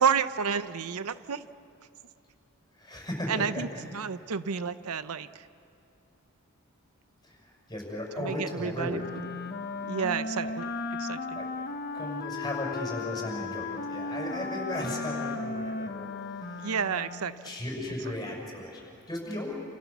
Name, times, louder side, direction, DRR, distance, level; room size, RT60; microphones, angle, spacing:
voice 1, 0.0-1.5 3.3-5.5 8.2-9.2 9.8-10.7 11.0-11.4 16.6-17.5, right 6 dB, 75° right, 13 dB, 0.7 m, -30 dB
voice 2, 2.7-3.8 7.2-9.1 10.4-10.5 11.3-11.5 11.9-16.7 17.4-19.5, left 1 dB, 20° left, -2 dB, 6.7 m, -36 dB
Wind instrument woodwind instrument, 8.9-17.5, left 3 dB, 45° left, 1.2 m, -36 dB
28.5 x 28.5 x 7.2 m, 2.5 s
head